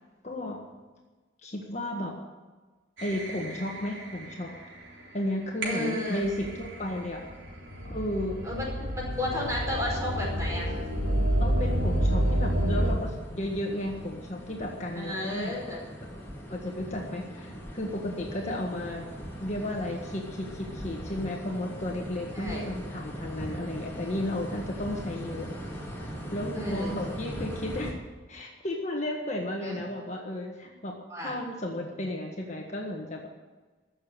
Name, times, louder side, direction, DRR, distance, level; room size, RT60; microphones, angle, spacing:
voice 1, 0.2-0.6 1.4-2.1 3.0-4.5 5.1-7.2 7.8-8.4 11.4-15.5 16.2-19.0 19.4-25.5 26.3-27.9 28.3-31.0 31.2-33.3, left 1 dB, 40° left, 0 dB, 1.6 m, -33 dB
sound 1, 3.0-4.8 5.6-12.9, right 1 dB, 80° right, 3.6 m, -29 dB
voice 2, 5.6-6.2 7.9-8.0 8.4-8.7 8.9-10.7 14.9-15.8 18.4-18.5 22.3-22.6 26.6-27.0 29.6-29.8 31.1-31.3, left 1 dB, 15° right, -3 dB, 5.1 m, -33 dB
sound 2, 9.1-27.9, equal, 15° left, 2.5 m, -41 dB
15.5 x 7.0 x 9.3 m, 1.3 s
head